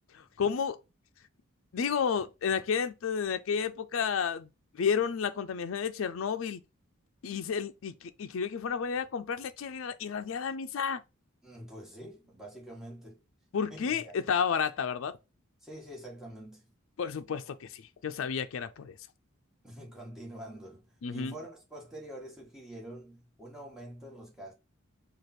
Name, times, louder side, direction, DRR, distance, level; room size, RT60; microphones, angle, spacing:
voice 1, 0.1-0.8 1.7-4.5 4.8-6.6 7.2-11.0 13.5-15.2 17.0-19.0 21.0-21.3, left 6 dB, 70° left, 0.4 m, -31 dB
voice 2, 11.4-13.2 13.7-14.2 15.6-16.7 19.6-24.5, right 1 dB, ahead, 1.4 m, -46 dB
4.8 x 2.3 x 4.2 m
head